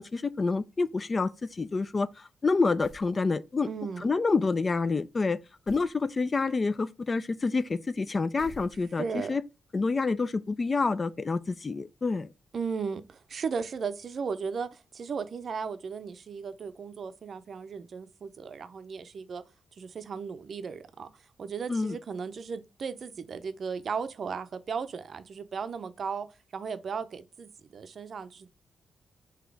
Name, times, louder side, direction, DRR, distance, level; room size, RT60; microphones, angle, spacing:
voice 1, 0.0-3.7 4.0-5.4 5.7-9.4 9.7-12.3 21.7-22.0, left 4 dB, 40° left, 0.3 m, -28 dB
sound 1, 2.8-3.2 5.7-6.0 8.4-9.2, left 2 dB, 75° left, 1.0 m, -49 dB
voice 2, 3.7-4.1 9.0-9.4 12.5-19.4 19.8-21.1 21.4-26.3 26.5-28.6, right 5 dB, 60° right, 0.5 m, -36 dB
3.9 x 2.9 x 4.6 m
supercardioid pair, 50°, 0 cm